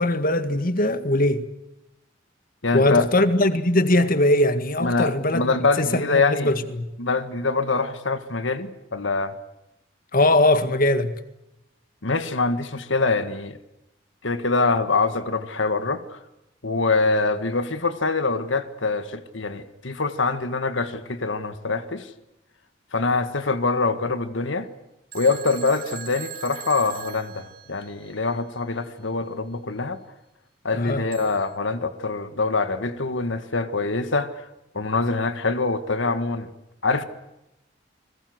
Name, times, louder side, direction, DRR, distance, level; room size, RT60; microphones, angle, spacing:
voice 1, 0.0-1.5 2.7-6.9 10.1-11.2 30.7-31.0, left 1 dB, 45° left, 1.9 m, -21 dB
voice 2, 2.6-3.1 4.8-6.5 7.0-9.4 12.0-13.6 14.2-16.2 16.6-22.1 22.9-24.7 25.1-30.0 30.6-34.4 34.7-36.5 36.8-37.0, left 3 dB, 70° left, 1.8 m, -24 dB
Telephone, 25.1-28.1 31.1-31.6, right 9 dB, 50° right, 1.8 m, -40 dB
30.0 x 21.5 x 7.9 m
head